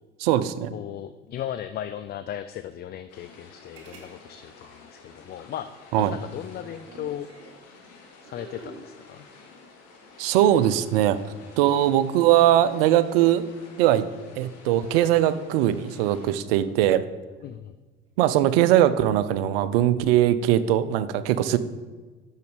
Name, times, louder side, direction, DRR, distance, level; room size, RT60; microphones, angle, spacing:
voice 1, 0.2-0.7 5.9-6.1 10.2-11.2 11.6-13.4 13.8-14.1 14.4-17.1 18.2-21.6, right 12 dB, 70° right, 14 dB, 0.6 m, -20 dB
voice 2, 0.7-5.7 6.0-7.3 8.2-9.3 17.4-17.7, left 10 dB, 35° left, 11 dB, 0.4 m, -36 dB
sound 1, 3.1-16.3, left 4 dB, 55° left, 2.1 m, -50 dB
sound 2, 3.8-4.1 4.4-4.5 6.3-7.6 8.2-8.9 10.1-11.3 13.1-13.5 15.4-15.7 16.2-16.7 18.1-18.4, right 3 dB, 55° right, 2.4 m, -48 dB
6.5 x 6.4 x 5.1 m, 1.4 s
hypercardioid pair, 65°, 30 cm